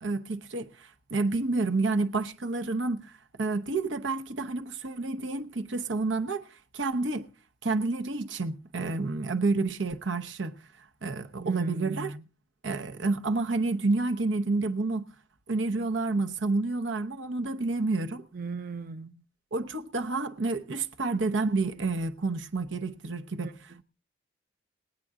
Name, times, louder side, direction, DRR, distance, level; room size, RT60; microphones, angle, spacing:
voice 1, 0.0-3.1 3.4-6.5 6.7-7.3 7.6-10.6 11.0-12.2 12.6-15.1 15.5-18.2 19.5-23.8, right 3 dB, 85° right, 0.9 m, -29 dB
voice 2, 11.4-12.1 18.3-19.1 23.4-23.5, right 4 dB, 50° right, 0.6 m, -37 dB
20.5 x 9.0 x 3.6 m
head